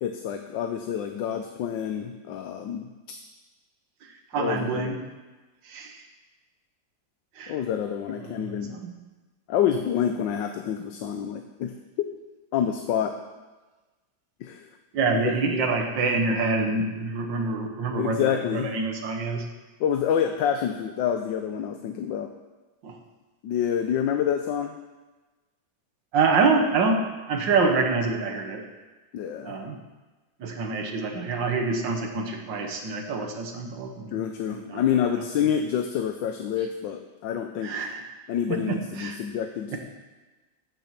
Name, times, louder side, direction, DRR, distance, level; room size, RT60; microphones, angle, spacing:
voice 1, 0.0-2.9 4.4-4.9 7.5-8.8 9.5-12.1 12.5-13.2 14.4-14.6 15.1-15.3 17.9-18.7 19.8-22.3 23.4-24.8 29.1-29.6 34.1-37.7 38.3-39.8, left 9 dB, 80° left, 5 dB, 1.4 m, -27 dB
voice 2, 4.0-5.0 5.7-6.0 7.4-7.6 8.2-8.9 14.9-19.5 22.8-23.0 26.1-28.7 29.4-29.8 30.4-34.2 34.5-34.8 35.1-35.2 37.6-38.1 38.5-39.2 39.7-39.8, right 4 dB, 75° right, 4 dB, 2.0 m, -26 dB
14.5 x 7.2 x 5.9 m, 1.2 s
omnidirectional pair, 2.0 m